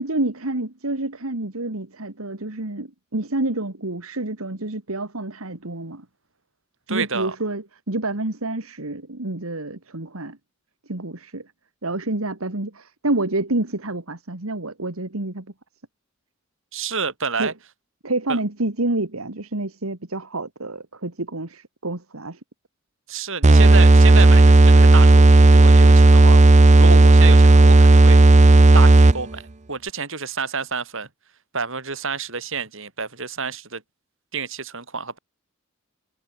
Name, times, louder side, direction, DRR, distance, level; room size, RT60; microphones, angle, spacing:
voice 1, 0.0-6.0 6.9-10.4 10.9-11.4 11.8-15.5 17.4-17.5 18.0-22.4, right 2 dB, 80° right, 2.3 m, -28 dB
voice 2, 6.9-7.4 16.7-17.5 18.3-18.4 23.1-26.5 26.7-28.2 28.7-29.4 29.7-31.1 31.5-33.8 34.3-35.2, right 5 dB, 65° right, 7.9 m, -29 dB
sound 1, 23.4-29.3, right 2 dB, 35° right, 0.7 m, -11 dB
head